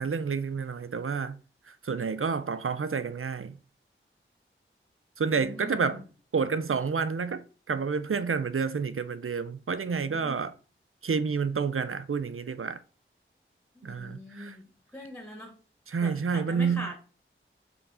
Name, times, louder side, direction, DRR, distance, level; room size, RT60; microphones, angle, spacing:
voice 1, 0.0-1.4 1.8-3.6 5.2-6.0 6.3-10.5 11.0-12.8 13.8-14.5 15.9-16.9, right 5 dB, 80° right, 0.6 m, -29 dB
voice 2, 5.3-6.1 9.9-10.5 13.7-15.6 16.0-17.0, left 1 dB, 5° left, 3.0 m, -43 dB
6.9 x 4.0 x 5.6 m
wide cardioid pair, 45°, 21 cm